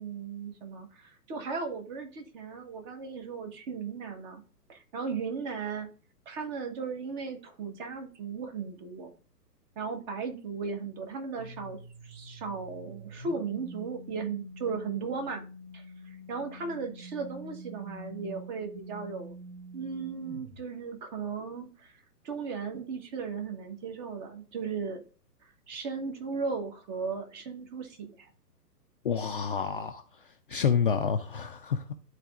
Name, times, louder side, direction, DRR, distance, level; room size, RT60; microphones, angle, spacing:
voice 1, 0.0-4.4 4.7-5.9 6.2-9.1 9.8-15.4 15.7-19.3 19.7-22.0 22.2-25.0 25.4-28.3, right 5 dB, 30° right, 1.3 m, -36 dB
sound 1, 11.4-20.6, equal, 55° right, 2.9 m, -46 dB
voice 2, 29.0-30.0 30.5-31.9, left 6 dB, 35° left, 0.5 m, -28 dB
12.0 x 4.1 x 2.4 m
figure-of-eight pair, 125°, 49 cm